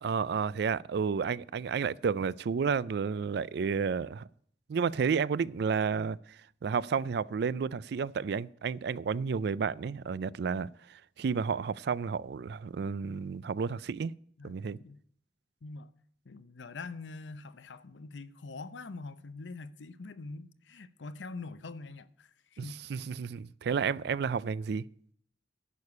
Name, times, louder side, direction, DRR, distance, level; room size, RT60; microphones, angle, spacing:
voice 1, 0.0-4.3 4.7-6.2 6.6-14.1 14.4-14.8 22.6-24.8, right 6 dB, 60° right, 0.4 m, -31 dB
voice 2, 14.4-15.0 15.6-15.9 16.2-23.2, left 3 dB, 85° left, 0.7 m, -44 dB
11.0 x 6.7 x 8.5 m
head